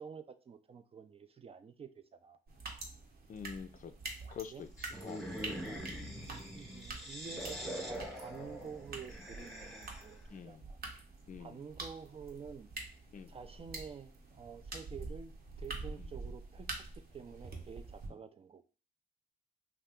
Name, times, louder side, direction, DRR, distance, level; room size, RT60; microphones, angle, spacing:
voice 1, 0.0-2.4 4.5-4.6 5.6-5.9 6.5-10.8 11.4-12.7 13.3-16.7 17.0-18.7, right 6 dB, 30° right, 10 dB, 0.4 m, -49 dB
sound 1, 2.5-18.1, right 3 dB, 50° right, 0.9 m, -47 dB
voice 2, 3.3-3.9 4.3-5.3 10.3-10.6 11.3-11.6 13.1-13.3 16.0-16.1 18.1-18.2, left 7 dB, 45° left, 9 dB, 0.4 m, -46 dB
sound 2, 4.8-10.3, equal, ahead, 0.9 m, -44 dB
2.7 x 2.3 x 3.5 m, 0.35 s
supercardioid pair, 60°, 20 cm